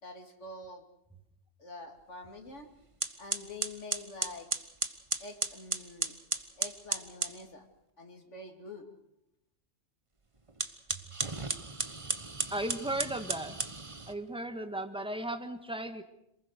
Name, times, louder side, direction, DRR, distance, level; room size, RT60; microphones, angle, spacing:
voice 1, 0.0-0.8 1.6-2.7 3.2-4.5 5.2-6.1 6.6-7.7 8.0-8.9, left 2 dB, 70° left, 5 dB, 3.0 m, -46 dB
sound 1, 2.5-2.6 3.0-7.4 10.5-14.2, right 3 dB, 25° right, 1.3 m, -35 dB
voice 2, 12.5-13.6 14.1-16.0, right 1 dB, 5° right, 8 dB, 1.7 m, -36 dB
27.5 x 20.5 x 6.7 m, 0.81 s
omnidirectional pair, 1.3 m